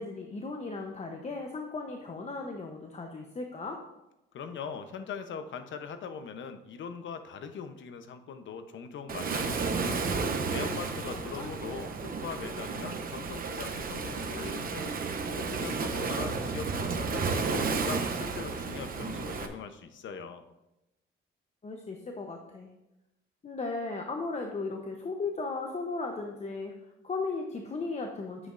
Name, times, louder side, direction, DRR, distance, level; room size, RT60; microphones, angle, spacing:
voice 1, 0.0-3.8 11.1-11.5 21.6-22.7 23.4-26.7 27.0-28.5, left 3 dB, 30° left, 3 dB, 0.8 m, -36 dB
voice 2, 4.3-20.4, left 6 dB, 60° left, 9 dB, 0.8 m, -41 dB
Waves surf, 9.1-19.5, right 4 dB, 45° right, 0.9 m, -32 dB
9.6 x 7.7 x 2.5 m, 0.93 s
cardioid pair, 100°, 21 cm